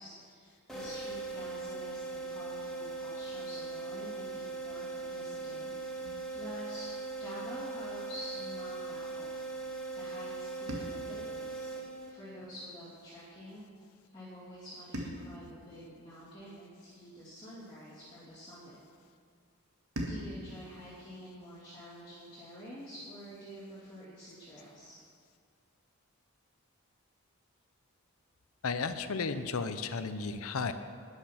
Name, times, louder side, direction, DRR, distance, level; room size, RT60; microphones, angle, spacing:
voice 1, 0.0-9.3 9.9-11.7 12.1-13.6 14.1-18.8 20.1-24.9, equal, 20° left, -11 dB, 2.6 m, -48 dB
sound 1, 0.7-12.4, right 3 dB, ahead, 2.4 m, -40 dB
sound 2, 6.0-8.3 10.7-13.0 14.9-17.4 20.0-22.5, equal, 90° right, 1.9 m, -46 dB
voice 2, 28.6-30.7, left 4 dB, 75° left, 10 dB, 0.7 m, -33 dB
12.0 x 9.8 x 5.9 m, 2.1 s
head